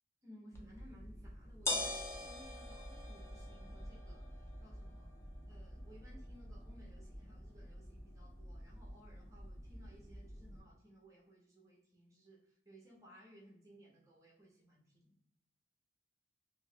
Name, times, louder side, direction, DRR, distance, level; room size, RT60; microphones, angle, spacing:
voice 1, 0.2-5.1 5.5-15.1, equal, 15° right, -4 dB, 0.8 m, -60 dB
sound 1, 0.5-10.6, left 1 dB, 15° left, 0.6 m, -45 dB
3.1 x 2.8 x 3.2 m, 0.75 s
head